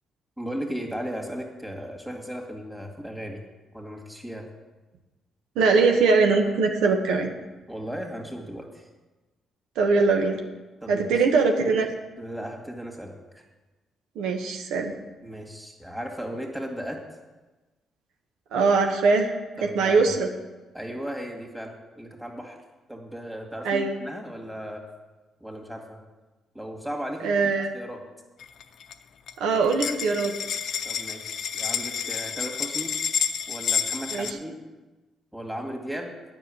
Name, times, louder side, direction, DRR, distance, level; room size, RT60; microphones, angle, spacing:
voice 1, 0.4-3.4 3.7-4.5 7.7-8.9 10.8-11.1 12.2-13.4 15.2-17.0 19.6-20.1 20.7-22.6 22.9-24.8 25.4-26.0 26.5-28.0 30.8-32.9 33.5-34.5 35.3-36.1, equal, 5° right, 1 dB, 2.2 m, -36 dB
voice 2, 5.5-7.3 9.8-10.4 10.9-11.9 14.1-14.9 18.5-19.3 19.6-20.3 23.6-23.9 27.2-27.7 29.4-30.3 34.1-34.3, right 4 dB, 90° right, 3 dB, 1.2 m, -21 dB
sound 1, 28.4-28.9 29.3-29.4 29.6-34.3, left 7 dB, 65° left, 0.6 m, -29 dB
9.7 x 6.0 x 8.5 m, 1.2 s
cardioid pair, 90°, 0 cm